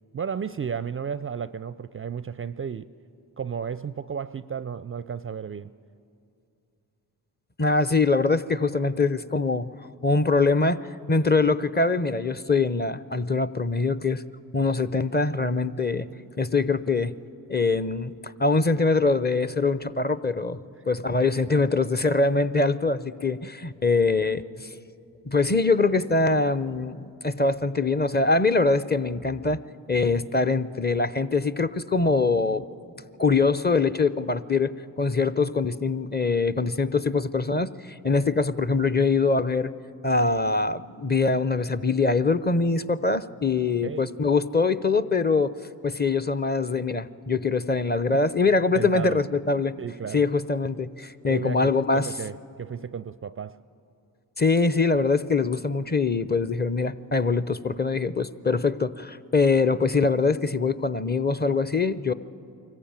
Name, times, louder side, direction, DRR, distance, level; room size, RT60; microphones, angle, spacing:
voice 1, 0.1-2.9 3.4-5.7 43.8-44.1 48.7-49.2 49.8-50.3 51.3-53.6, right 7 dB, 30° right, 0.4 m, -33 dB
voice 2, 7.6-9.7 10.0-14.2 14.5-16.1 16.4-17.1 17.5-20.6 20.9-24.7 25.3-29.6 29.9-32.7 33.2-34.7 35.0-39.7 40.0-45.5 45.8-49.7 50.1-52.1 54.4-62.1, left 3 dB, 20° left, 0.7 m, -23 dB
23.5 x 14.5 x 8.9 m
supercardioid pair, 45°, 44 cm